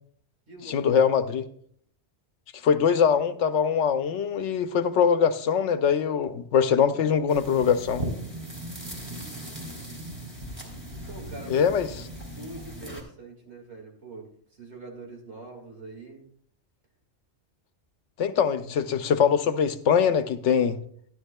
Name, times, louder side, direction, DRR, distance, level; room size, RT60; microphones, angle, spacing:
voice 1, 0.7-1.5 2.6-8.0 11.5-11.9 18.2-20.8, left 7 dB, 80° left, 1.0 m, -22 dB
sound 1, 7.3-13.0, right 1 dB, 20° right, 3.0 m, -37 dB
voice 2, 11.1-11.6 12.3-16.2, right 2 dB, 70° right, 2.3 m, -44 dB
14.5 x 11.0 x 2.2 m
omnidirectional pair, 1.2 m